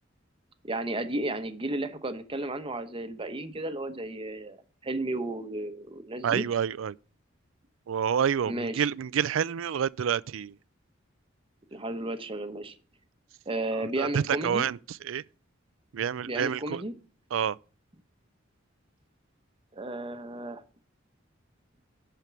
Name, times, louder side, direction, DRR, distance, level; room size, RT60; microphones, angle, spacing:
voice 1, 0.6-4.6 4.8-6.5 8.5-8.8 11.7-12.8 13.5-14.7 16.2-16.9 19.7-20.6, right 2 dB, 25° right, 0.9 m, -33 dB
voice 2, 6.2-7.0 7.9-10.5 14.0-14.8 15.0-15.2 15.9-16.8 17.3-17.6, right 8 dB, 75° right, 0.4 m, -28 dB
11.0 x 4.5 x 6.8 m
head